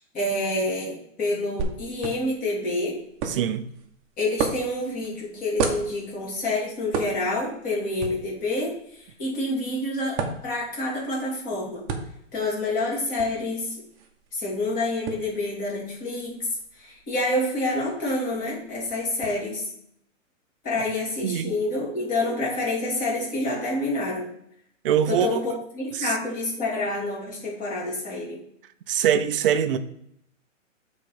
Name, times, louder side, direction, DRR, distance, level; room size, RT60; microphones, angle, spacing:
voice 1, 0.0-3.0 4.2-8.7 9.0-11.8 12.3-13.8 14.3-16.4 16.7-19.6 20.6-24.3 25.1-28.4, left 2 dB, 20° left, 3.0 m, -28 dB
sound 1, 1.6-19.3, right 5 dB, 30° right, 1.1 m, -36 dB
voice 2, 3.2-3.7 21.2-21.6 24.8-25.4 25.9-26.2 28.9-29.8, right 9 dB, 45° right, 0.7 m, -23 dB
7.7 x 4.1 x 5.0 m
hypercardioid pair, 155°, 38 cm